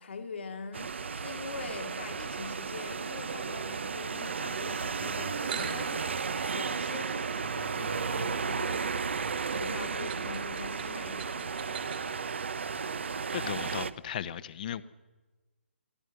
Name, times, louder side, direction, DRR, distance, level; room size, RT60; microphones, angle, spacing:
voice 1, 0.0-9.1 9.5-11.6, left 4 dB, 60° left, 5 dB, 1.9 m, -43 dB
sound 1, 0.7-13.9, right 5 dB, 65° right, 1.0 m, -34 dB
Wind instrument woodwind instrument, 4.6-8.9, right 6 dB, 25° right, 1.8 m, -51 dB
sound 2, 5.4-12.2, right 8 dB, 45° right, 2.9 m, -45 dB
voice 2, 13.3-14.8, left 10 dB, 40° left, 16 dB, 1.0 m, -36 dB
23.5 x 15.5 x 8.0 m, 1.2 s
figure-of-eight pair, 140°, 7 cm